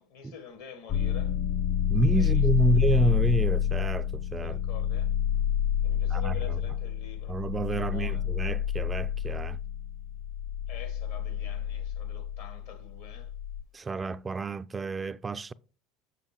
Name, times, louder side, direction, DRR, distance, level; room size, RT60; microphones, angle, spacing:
voice 1, 0.0-1.3 2.1-2.4 4.4-5.1 5.8-7.4 7.7-8.2 10.7-13.3, left 7 dB, 70° left, 1.3 m, -46 dB
sound 1, 0.9-13.6, left 9 dB, 55° left, 0.9 m, -28 dB
voice 2, 1.9-4.6 6.1-6.6 7.3-9.6 13.7-15.5, right 3 dB, 25° right, 0.3 m, -29 dB
7.5 x 6.5 x 3.0 m
hypercardioid pair, 70°, 0 cm